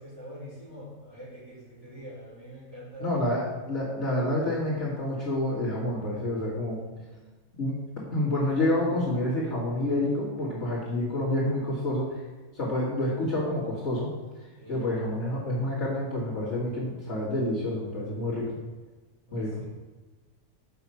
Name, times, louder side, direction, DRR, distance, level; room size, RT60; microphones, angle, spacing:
voice 1, 0.0-3.3 7.1-7.3 14.5-14.9 19.3-19.6, equal, 15° right, -10 dB, 3.3 m, -45 dB
voice 2, 3.0-6.8 7.6-7.8 8.1-12.1 12.5-14.1 14.7-18.6 19.3-19.6, left 1 dB, 40° left, -8 dB, 2.5 m, -28 dB
7.1 x 5.9 x 5.7 m, 1.2 s
omnidirectional pair, 1.7 m